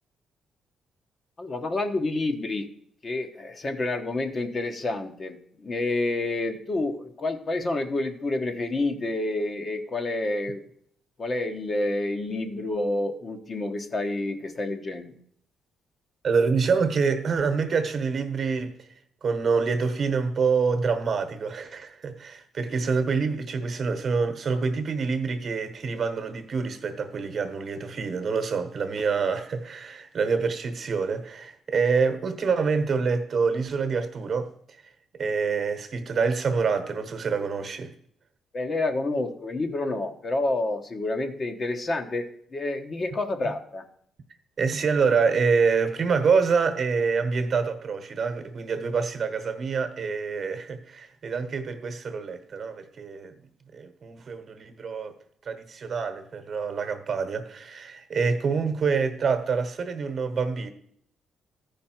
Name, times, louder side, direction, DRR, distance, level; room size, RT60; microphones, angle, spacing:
voice 1, 1.4-2.7 3.0-10.6 11.2-15.1 38.5-42.3 42.5-43.8, left 2 dB, 35° left, 1.1 m, -29 dB
voice 2, 16.2-18.9 19.2-34.8 35.2-37.9 43.4-43.5 44.6-53.3 53.7-55.1 55.4-60.7, right 5 dB, 50° right, 1.1 m, -26 dB
14.0 x 5.3 x 4.5 m
cardioid pair, 90°, 0 cm